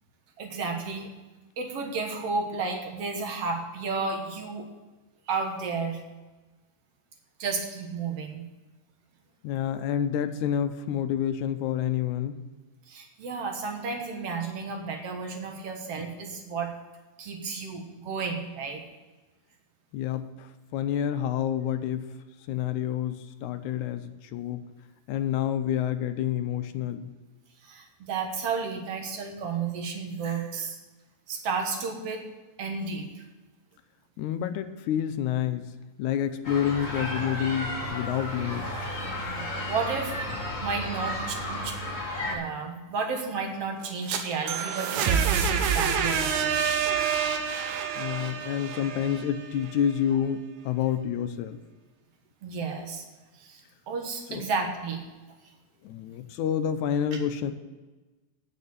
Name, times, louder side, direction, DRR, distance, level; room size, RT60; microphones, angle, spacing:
voice 1, 0.4-1.1 1.6-4.7 5.3-6.0 7.4-8.4 12.9-16.7 17.2-18.8 27.6-30.8 31.3-32.2 32.6-33.2 39.0-40.1 40.6-41.8 42.2-46.6 52.4-53.1 53.3-55.0, right 4 dB, 60° right, 3 dB, 2.2 m, -32 dB
voice 2, 9.4-12.4 19.9-22.1 22.5-24.6 25.1-27.1 34.2-35.7 36.0-38.7 48.0-51.6 54.3-54.5 55.8-57.5, left 9 dB, 85° left, 9 dB, 2.1 m, -28 dB
sound 1, 36.4-42.4, left 1 dB, 30° left, 1.9 m, -33 dB
sound 2, 43.8-49.7, right 7 dB, 80° right, 2.2 m, -27 dB
9.1 x 6.6 x 8.4 m, 1.2 s
omnidirectional pair, 3.4 m